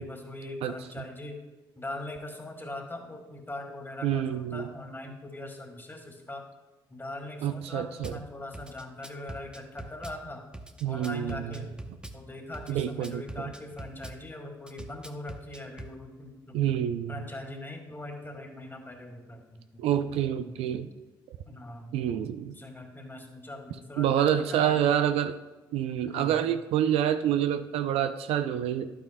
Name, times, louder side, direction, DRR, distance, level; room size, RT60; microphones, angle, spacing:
voice 1, 0.0-1.4 1.8-6.4 6.9-10.5 10.8-11.7 12.1-16.6 17.1-19.8 20.3-20.5 21.5-24.8 26.1-26.4, left 1 dB, 20° left, 2 dB, 2.1 m, -41 dB
voice 2, 0.6-1.0 4.0-4.7 7.4-8.2 10.8-11.5 12.7-13.3 16.5-17.2 19.8-20.9 21.9-22.6 24.0-25.3 25.7-28.9, right 10 dB, 70° right, 10 dB, 0.4 m, -27 dB
Drum kit / Bass drum, 8.0-8.2 8.5-10.2 10.5-12.2 12.5-14.2 14.7-15.9, right 1 dB, 10° right, 0.8 m, -42 dB
11.5 x 8.7 x 2.2 m, 1.1 s
hypercardioid pair, 50°, 11 cm